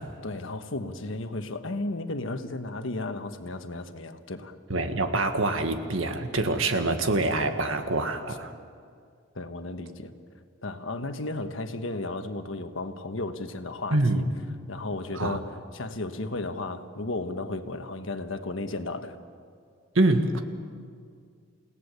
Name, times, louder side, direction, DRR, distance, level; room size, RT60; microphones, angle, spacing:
voice 1, 0.2-4.5 9.3-10.1 10.6-14.2 14.7-19.2, left 2 dB, 75° left, 7 dB, 1.3 m, -34 dB
voice 2, 4.7-8.5 13.9-14.2 15.1-15.4 19.9-20.4, right 2 dB, 80° right, 7 dB, 1.7 m, -25 dB
29.5 x 17.5 x 6.8 m, 2.2 s
head